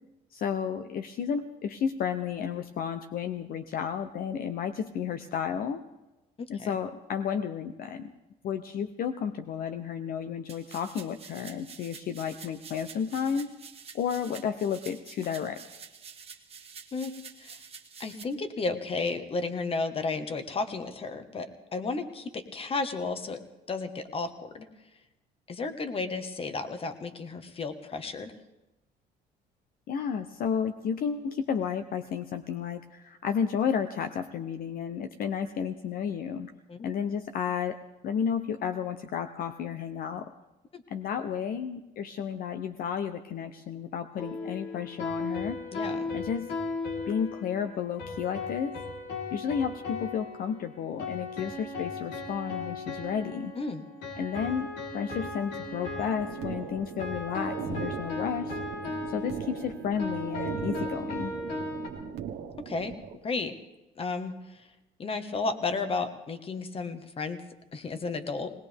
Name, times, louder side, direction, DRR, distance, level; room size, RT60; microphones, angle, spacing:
voice 1, 0.3-5.8 6.5-8.1 8.4-13.5 13.9-15.6 29.9-36.5 36.8-37.8 38.0-40.3 40.9-45.6 46.1-46.5 47.1-48.8 49.3-53.5 54.2-54.7 54.9-58.6 59.1-61.3, left 7 dB, 60° left, 8 dB, 0.7 m, -32 dB
voice 2, 6.4-6.8 16.9-17.1 17.4-17.6 18.0-23.4 23.7-24.7 25.5-28.3 36.7-36.8 40.7-40.8 45.7-46.1 53.6-53.8 62.6-62.9 63.2-63.5 64.0-64.7 65.0-67.4 67.7-68.5, left 3 dB, 35° left, 9 dB, 1.4 m, -33 dB
sound 1, 10.5-18.2, right 6 dB, 35° right, 1.4 m, -48 dB
sound 2, 44.2-61.9, left 2 dB, 85° left, 3.9 m, -36 dB
sound 3, 56.2-63.2, right 8 dB, 80° right, 1.4 m, -39 dB
19.5 x 19.5 x 3.5 m, 1.0 s
cardioid pair, 110°, 17 cm